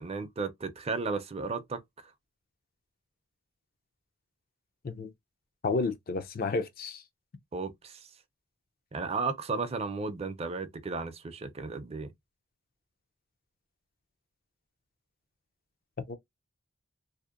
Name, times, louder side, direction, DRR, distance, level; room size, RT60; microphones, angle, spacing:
voice 1, 0.0-1.8 7.5-8.1 8.9-12.1, right 4 dB, 30° right, 0.5 m, -34 dB
voice 2, 5.6-7.0 16.1-16.2, left 3 dB, 45° left, 0.4 m, -31 dB
2.7 x 2.0 x 2.4 m
head